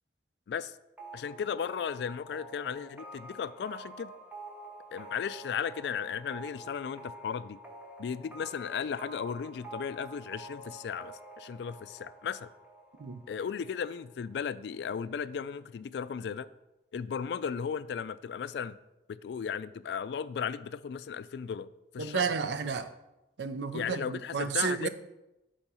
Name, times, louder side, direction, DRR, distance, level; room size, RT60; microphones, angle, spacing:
sound 1, 1.0-14.5, right 1 dB, 10° right, 1.0 m, -48 dB
voice 1, 1.1-4.1 4.9-7.6 8.0-12.5 13.3-16.5 16.9-18.8 19.1-22.3 23.7-24.9, left 7 dB, 80° left, 16 dB, 0.3 m, -35 dB
voice 2, 22.0-22.9 23.4-24.9, right 6 dB, 85° right, 11 dB, 0.5 m, -32 dB
7.1 x 3.9 x 5.5 m, 0.94 s
head